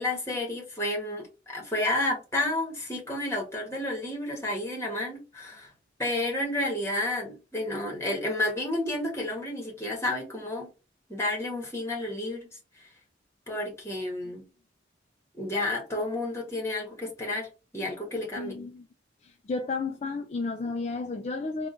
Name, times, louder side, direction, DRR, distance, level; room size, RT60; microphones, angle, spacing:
voice 1, 0.0-5.7 6.0-10.7 11.1-12.5 13.5-14.4 15.3-18.6, left 1 dB, 15° left, 1.5 m, -31 dB
voice 2, 18.4-18.9 19.2-21.7, left 3 dB, 35° left, 0.3 m, -32 dB
3.7 x 2.4 x 3.7 m
head